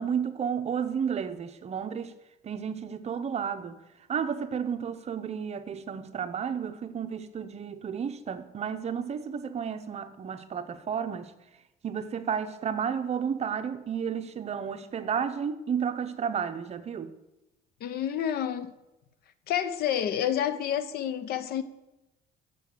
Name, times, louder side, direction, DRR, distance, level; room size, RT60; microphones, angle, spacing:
voice 1, 0.0-2.1 2.4-3.8 4.1-11.3 11.8-17.1, right 7 dB, 40° right, 0.7 m, -32 dB
voice 2, 17.8-18.7 19.5-21.6, left 10 dB, 70° left, 0.8 m, -29 dB
6.9 x 6.9 x 6.5 m
cardioid pair, 110°, 17 cm